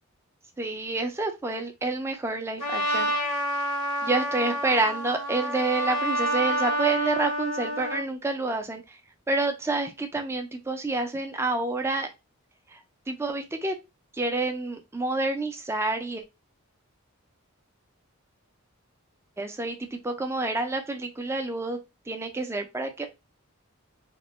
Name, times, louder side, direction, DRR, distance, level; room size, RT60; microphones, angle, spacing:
voice 1, 0.6-3.1 4.0-9.0 9.3-12.1 12.7-12.8 13.1-13.8 14.1-16.2 19.4-21.8 22.1-23.1, right 3 dB, 10° right, 5 dB, 0.3 m, -28 dB
Trumpet, 2.6-8.1, equal, 85° left, 0.8 m, -28 dB
2.9 x 2.0 x 2.9 m, 0.25 s
head